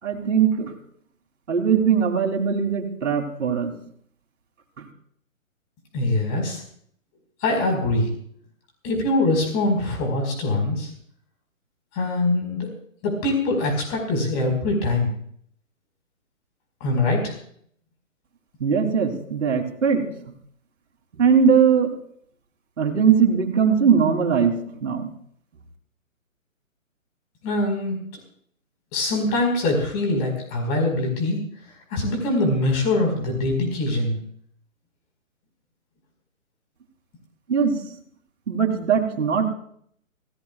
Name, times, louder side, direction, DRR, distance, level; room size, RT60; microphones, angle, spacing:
voice 1, 0.0-0.7 1.5-3.7 4.8-4.9 18.6-20.1 21.1-21.9 22.8-24.5 24.8-25.1 37.5-37.8 38.5-39.5, right 7 dB, 60° right, 2 dB, 3.3 m, -20 dB
voice 2, 5.9-6.6 7.4-8.1 8.8-10.9 11.9-12.7 13.0-15.1 16.8-17.3 27.4-28.0 28.9-31.4 31.9-34.2, left 2 dB, 25° left, 2 dB, 4.9 m, -23 dB
25.0 x 17.0 x 2.4 m, 0.63 s
hypercardioid pair, 145°, 41 cm